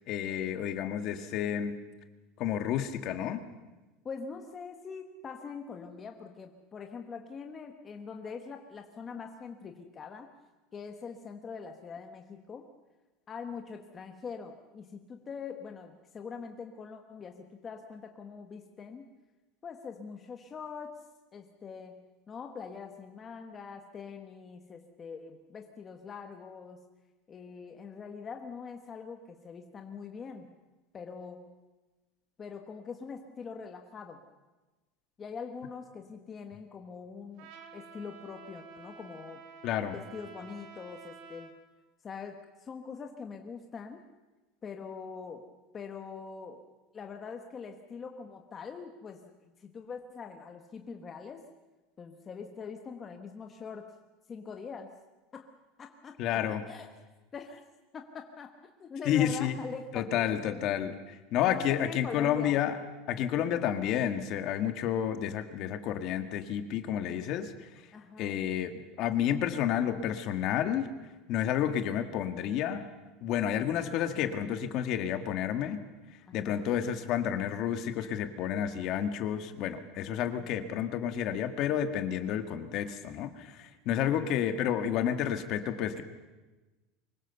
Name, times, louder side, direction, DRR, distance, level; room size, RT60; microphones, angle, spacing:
voice 1, 0.1-1.8 2.4-3.4 39.6-39.9 56.2-56.6 59.1-59.5 59.9-62.8 63.1-67.5 68.2-70.9 71.3-72.8 73.2-75.8 76.3-86.0, left 10 dB, 40° left, 8 dB, 1.6 m, -30 dB
voice 2, 4.0-10.3 10.7-12.7 13.3-19.1 19.6-21.1 21.3-26.8 27.3-30.5 30.9-31.5 32.4-34.2 35.2-39.4 39.8-41.5 42.0-44.0 44.6-46.7 46.9-51.4 52.0-53.9 54.3-55.0 55.3-55.5 55.8-56.9 57.3-57.6 57.9-58.5 58.8-60.7 61.5-62.6 67.9-68.5 76.3-76.7 84.0-84.5, left 5 dB, 20° left, 4 dB, 1.2 m, -43 dB
Trumpet, 37.4-41.6, right 5 dB, 50° right, 3.0 m, -50 dB
24.5 x 22.0 x 6.9 m, 1.2 s
cardioid pair, 175°, 0 cm